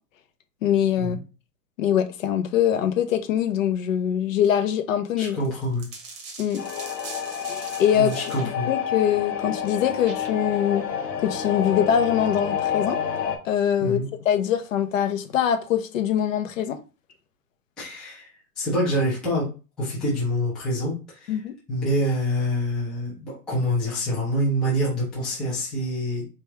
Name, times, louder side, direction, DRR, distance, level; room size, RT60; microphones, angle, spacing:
voice 1, 0.6-1.2 1.8-5.4 6.4-6.6 7.5-8.1 8.7-10.9 11.2-13.0 13.4-14.0 14.2-16.8 21.3-21.5, left 9 dB, 50° left, 0.7 m, -23 dB
voice 2, 5.2-5.9 7.9-8.7 13.8-14.1 17.8-18.3 18.6-19.5 19.8-21.4 21.7-26.3, equal, ahead, 0.4 m, -26 dB
sound 1, 5.4-8.5 10.0-10.6, right 4 dB, 20° right, 0.9 m, -42 dB
sound 2, 6.6-13.4, left 8 dB, 75° left, 1.1 m, -29 dB
3.5 x 3.1 x 2.9 m
hypercardioid pair, 120°, 49 cm